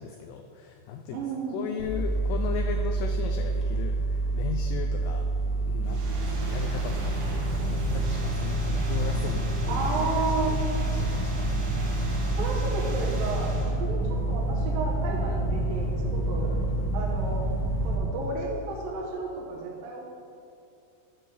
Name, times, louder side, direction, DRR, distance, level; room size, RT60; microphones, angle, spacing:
voice 1, 0.0-1.2 1.5-5.3 5.5-10.1 10.9-11.6, left 7 dB, 90° left, 5 dB, 1.9 m, -37 dB
voice 2, 1.1-1.7 9.7-10.5 12.3-17.5 17.8-20.0, right 3 dB, 75° right, -3 dB, 2.5 m, -33 dB
sound 1, 1.8-18.0, right 2 dB, 55° left, 2.2 m, -27 dB
sound 2, 5.8-13.8, right 1 dB, 55° right, 2.2 m, -40 dB
9.4 x 4.7 x 6.7 m, 2.5 s
omnidirectional pair, 4.4 m